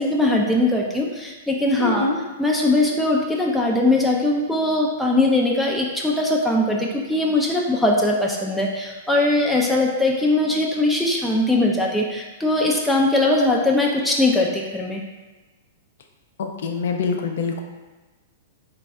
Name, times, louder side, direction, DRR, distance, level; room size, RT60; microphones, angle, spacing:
voice 1, 0.0-2.1 2.4-15.0, left 2 dB, ahead, -3 dB, 0.4 m, -20 dB
voice 2, 1.8-2.2 16.4-17.6, left 4 dB, 65° left, 4 dB, 0.5 m, -25 dB
4.0 x 2.2 x 3.4 m, 1.2 s
hypercardioid pair, 110°, 0 cm